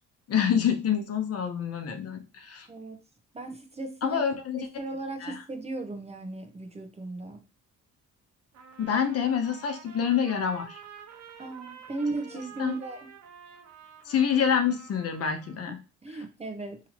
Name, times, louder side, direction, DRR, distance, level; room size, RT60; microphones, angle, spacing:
voice 1, 0.3-2.7 4.0-4.7 5.2-5.4 8.8-10.8 12.6-12.7 14.0-15.8, left 7 dB, 50° left, 6 dB, 0.8 m, -27 dB
voice 2, 2.7-3.0 3.3-4.2 4.6-7.4 11.4-13.1 15.7-15.8 16.0-16.8, right 2 dB, 20° right, 5 dB, 0.6 m, -36 dB
Trumpet, 8.5-15.7, right 7 dB, 60° right, 0.8 m, -49 dB
2.9 x 2.7 x 4.2 m, 0.31 s
cardioid pair, 90°, 30 cm